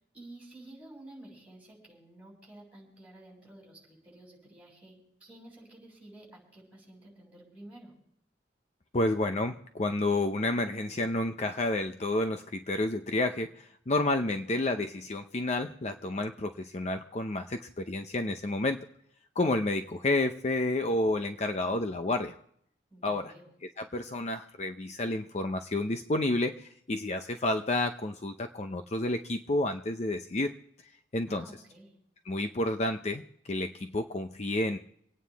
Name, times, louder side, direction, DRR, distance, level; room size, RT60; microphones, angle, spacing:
voice 1, 0.0-7.9 22.9-23.5 31.3-31.9, right 1 dB, 10° right, -3 dB, 6.7 m, -51 dB
voice 2, 8.9-18.8 19.4-22.3 23.0-23.3 23.8-30.5 31.1-31.4 32.3-33.2 33.5-34.8, left 2 dB, 40° left, 7 dB, 0.6 m, -30 dB
28.0 x 9.4 x 3.5 m, 0.71 s
head